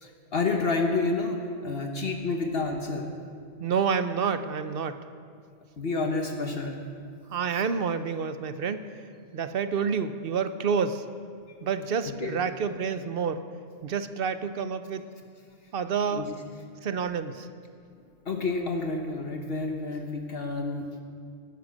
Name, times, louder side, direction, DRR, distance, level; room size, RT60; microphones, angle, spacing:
voice 1, 0.0-3.1 5.8-6.8 12.2-12.4 16.1-16.3 18.2-21.0, left 3 dB, 60° left, 3 dB, 1.3 m, -29 dB
voice 2, 3.6-5.0 7.3-8.8 9.3-11.0 11.6-13.4 13.8-15.0 15.7-16.3 16.8-17.5, right 6 dB, 60° right, 11 dB, 0.9 m, -28 dB
18.5 x 11.5 x 6.3 m, 2.3 s
omnidirectional pair, 1.1 m